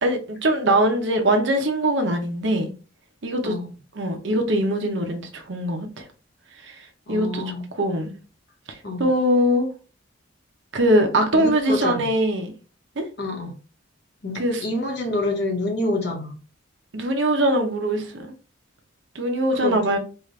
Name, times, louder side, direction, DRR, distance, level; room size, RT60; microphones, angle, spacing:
voice 1, 0.0-2.7 3.2-3.5 3.9-6.0 7.1-7.4 7.8-8.1 8.7-9.7 10.7-12.5 13.0-13.1 14.4-14.6 16.9-18.3 19.1-20.0, right 1 dB, 65° right, 0.8 m, -22 dB
voice 2, 7.1-7.6 8.8-9.1 11.3-12.0 13.2-13.5 14.2-16.3 19.5-20.0, left 1 dB, 55° left, 1.2 m, -27 dB
5.0 x 2.5 x 3.2 m
head